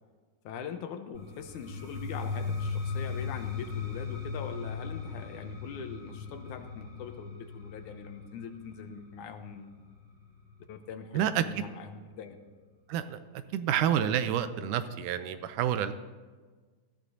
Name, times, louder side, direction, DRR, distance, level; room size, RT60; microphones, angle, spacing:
voice 1, 0.4-9.9 10.7-12.4, left 6 dB, 80° left, 7 dB, 2.2 m, -42 dB
sound 1, 1.1-10.9, left 5 dB, 15° right, 1.8 m, -38 dB
voice 2, 11.1-11.6 12.9-13.2 13.5-15.9, right 10 dB, 85° right, 11 dB, 2.2 m, -28 dB
19.5 x 13.5 x 2.7 m, 1.4 s
omnidirectional pair, 3.7 m